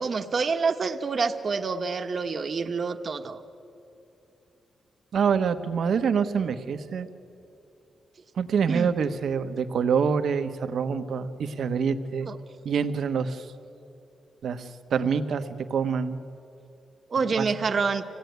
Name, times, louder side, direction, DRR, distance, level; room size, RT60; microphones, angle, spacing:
voice 1, 0.0-3.4 8.7-8.9 12.2-12.4 17.1-18.0, right 5 dB, 45° right, 6 dB, 1.1 m, -27 dB
voice 2, 5.1-7.1 8.3-12.3 12.6-13.5 14.4-16.2 17.4-17.5, right 6 dB, 75° right, 9 dB, 1.1 m, -26 dB
25.0 x 17.0 x 9.4 m, 2.8 s
wide cardioid pair, 130°, 0 cm